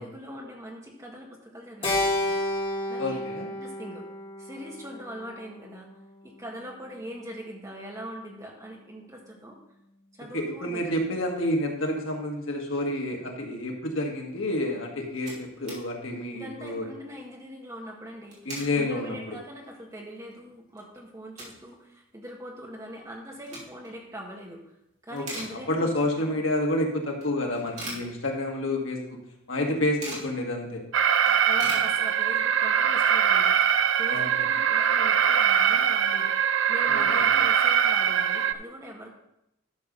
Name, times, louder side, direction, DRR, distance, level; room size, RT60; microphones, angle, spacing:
voice 1, 0.0-2.4 2.9-3.2 3.5-4.0 4.4-5.9 6.2-9.6 10.1-11.0 16.3-24.7 25.0-26.4 31.4-33.7 34.0-39.1, equal, 15° right, -1 dB, 1.6 m, -42 dB
Keyboard (musical), 1.8-6.2, left 1 dB, 25° left, 2.0 m, -31 dB
voice 2, 3.0-3.5 10.3-16.8 18.5-19.4 25.1-25.2 25.7-29.2 29.5-30.8 34.1-34.4 36.9-37.3, left 1 dB, 80° left, 1 dB, 1.8 m, -29 dB
sound 1, 14.7-14.8 14.9-15.8 16.2-16.3 16.6-16.9 18.1-18.8 19.3-19.4 19.9-20.0 20.3-21.7 22.0-22.1 23.1-24.0 24.4-24.7 25.0-26.0 26.4-26.5 27.2-28.7 29.0-29.1 29.3-30.4 30.8-30.9 31.1-32.5, right 1 dB, 35° right, 3.0 m, -41 dB
Alarm, 30.9-38.5, right 8 dB, 70° right, 0.4 m, -22 dB
11.5 x 6.6 x 3.9 m, 0.81 s
head